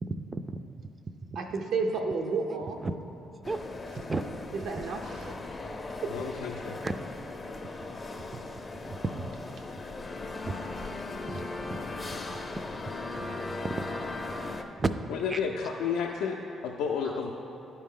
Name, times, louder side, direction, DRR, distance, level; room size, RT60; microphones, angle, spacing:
voice 1, 0.0-0.6 2.8-3.0 3.5-3.6 4.1-4.2 4.7-4.8 6.8-6.9 8.2-8.4 8.8-9.3 10.4-10.6 11.3-11.5 11.7-11.9 12.3-12.4 13.2-13.3 14.8-14.9 15.3-15.4, right 3 dB, 30° right, 10 dB, 0.3 m, -33 dB
voice 2, 1.4-2.8 4.5-5.8, right 4 dB, 75° right, 2 dB, 0.5 m, -32 dB
sound 1, 3.4-14.6, left 3 dB, 30° left, 0.5 m, -38 dB
voice 3, 6.1-6.7 15.1-16.3 16.8-17.3, left 6 dB, 90° left, -1 dB, 0.4 m, -31 dB
10.5 x 4.3 x 3.7 m, 2.9 s
cardioid pair, 90°, 0 cm